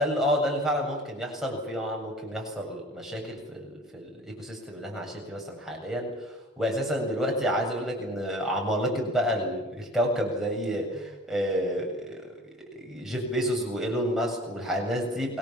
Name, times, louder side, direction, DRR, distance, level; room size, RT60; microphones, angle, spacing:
voice 1, 0.0-6.1 6.6-12.3 12.8-15.4, equal, ahead, -1 dB, 7.7 m, -29 dB
29.0 x 22.0 x 7.5 m, 0.97 s
head